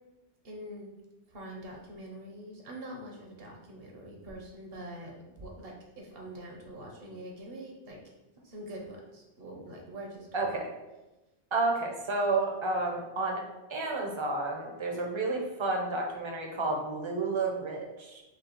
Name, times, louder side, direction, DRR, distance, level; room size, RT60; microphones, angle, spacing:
voice 1, 0.4-0.9 1.3-8.0 8.4-10.4, right 1 dB, 65° right, 0 dB, 1.0 m, -44 dB
voice 2, 10.3-10.7 11.5-13.4 13.7-18.2, right 3 dB, 35° right, 1 dB, 0.5 m, -31 dB
5.3 x 2.3 x 3.0 m, 1.0 s
omnidirectional pair, 1.1 m